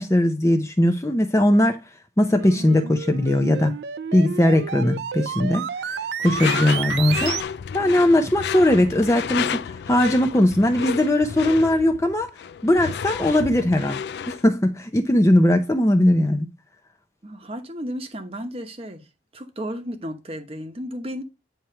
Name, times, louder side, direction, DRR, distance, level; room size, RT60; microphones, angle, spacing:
voice 1, 0.0-1.8 2.2-3.7 4.1-6.0 6.2-7.4 7.7-12.3 12.6-16.5, left 1 dB, 15° left, 0.6 m, -19 dB
sound 1, 2.3-7.4, right 7 dB, 65° right, 0.4 m, -31 dB
Door / Screech, 6.2-14.5, left 7 dB, 65° left, 0.3 m, -31 dB
voice 2, 17.2-19.1 19.3-21.2, equal, 30° right, 1.0 m, -33 dB
9.1 x 3.1 x 5.6 m
head